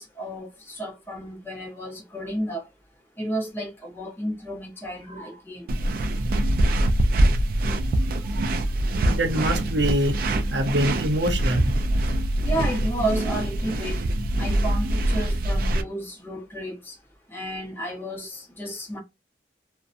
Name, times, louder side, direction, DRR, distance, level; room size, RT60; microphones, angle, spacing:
voice 1, 0.0-2.6 3.2-5.7 8.2-8.5 12.4-14.0 14.4-17.0 17.3-19.0, right 1 dB, 10° left, 0.7 m, -32 dB
sound 1, 5.7-15.8, right 1 dB, 55° right, 0.3 m, -24 dB
voice 2, 9.0-10.2 10.5-11.7, equal, 75° right, 0.7 m, -24 dB
2.6 x 2.1 x 2.4 m
head